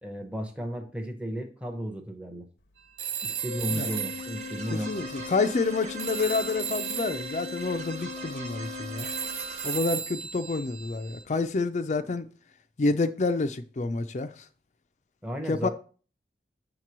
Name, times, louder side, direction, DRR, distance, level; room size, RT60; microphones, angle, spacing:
voice 1, 0.0-2.5 3.2-5.0 15.2-15.7, equal, 5° right, 0.7 m, -34 dB
Telephone, 3.0-5.7 6.0-11.2, right 8 dB, 75° right, 0.7 m, -36 dB
sound 1, 3.4-9.8, right 4 dB, 40° right, 0.9 m, -42 dB
Organ, 3.5-10.0, left 7 dB, 85° left, 0.8 m, -41 dB
voice 2, 4.7-9.1 9.6-12.3 12.8-14.4 15.5-15.7, left 3 dB, 40° left, 0.4 m, -28 dB
7.3 x 3.0 x 6.0 m
head